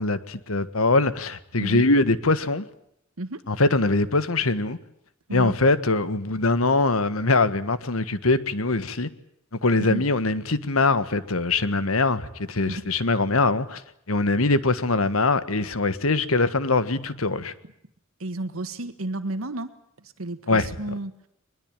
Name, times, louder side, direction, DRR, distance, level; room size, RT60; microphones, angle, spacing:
voice 1, 0.0-2.6 3.5-4.8 5.3-9.1 9.6-13.8 14.1-17.5 20.5-20.7, left 3 dB, 90° left, 1.5 m, -22 dB
voice 2, 18.2-19.7 20.0-21.1, right 2 dB, 90° right, 1.6 m, -32 dB
22.5 x 21.5 x 9.0 m
head